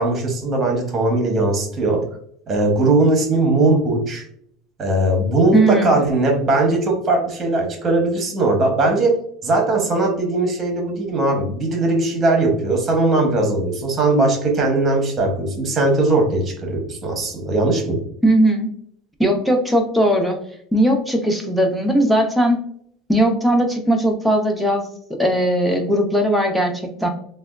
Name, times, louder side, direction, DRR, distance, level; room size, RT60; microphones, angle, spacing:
voice 1, 0.0-2.0 2.5-4.2 4.8-9.1 9.4-18.0, right 2 dB, 25° right, 2 dB, 0.9 m, -19 dB
voice 2, 5.5-6.1 18.2-18.7 19.2-20.4 20.7-22.6 23.1-24.9 25.2-27.1, right 1 dB, ahead, 2 dB, 0.5 m, -18 dB
3.3 x 2.2 x 2.3 m, 0.65 s
cardioid pair, 150°, 0 cm